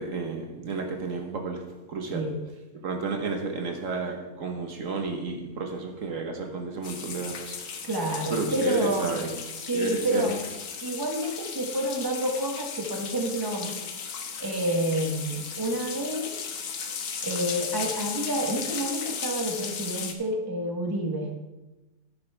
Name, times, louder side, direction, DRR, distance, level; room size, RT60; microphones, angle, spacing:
voice 1, 0.0-2.5 2.8-7.7 8.3-9.4 9.7-10.4, right 4 dB, 60° right, 3 dB, 1.5 m, -32 dB
sound 1, 6.8-20.1, left 6 dB, 65° left, 1.3 m, -36 dB
voice 2, 7.9-9.2 9.7-10.4 10.8-13.7 14.4-16.3 17.2-21.3, right 1 dB, 15° right, 3 dB, 1.0 m, -29 dB
11.0 x 9.5 x 3.4 m, 1.1 s
omnidirectional pair, 1.6 m